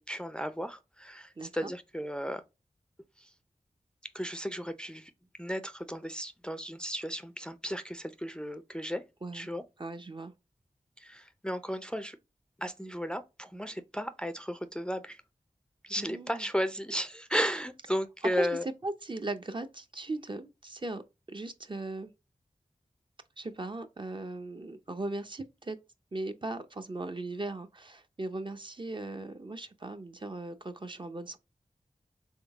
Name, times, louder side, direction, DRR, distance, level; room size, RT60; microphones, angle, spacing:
voice 1, 0.0-2.4 3.2-3.3 4.0-5.1 5.4-9.0 9.3-9.6 11.0-12.2 12.6-15.2 15.8-18.7, equal, 5° left, 0.5 m, -34 dB
voice 2, 1.4-1.7 9.2-9.5 9.8-10.3 16.0-16.4 18.4-18.5 18.8-21.0 21.3-22.1 23.4-25.8 26.1-31.4, right 2 dB, 35° right, 0.6 m, -38 dB
3.7 x 3.5 x 3.5 m
cardioid pair, 40°, 13 cm